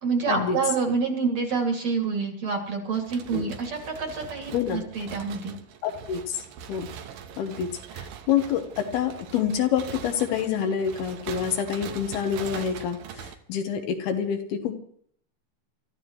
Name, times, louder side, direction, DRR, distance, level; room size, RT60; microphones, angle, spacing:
voice 1, 0.0-5.5, right 5 dB, 45° right, 2 dB, 3.1 m, -27 dB
sound 1, 2.9-13.4, right 8 dB, 70° right, 2.6 m, -42 dB
voice 2, 4.5-4.8 5.8-6.4 6.7-6.9 7.4-14.8, left 8 dB, 75° left, 6 dB, 3.0 m, -27 dB
29.0 x 13.5 x 3.1 m, 0.63 s
omnidirectional pair, 4.7 m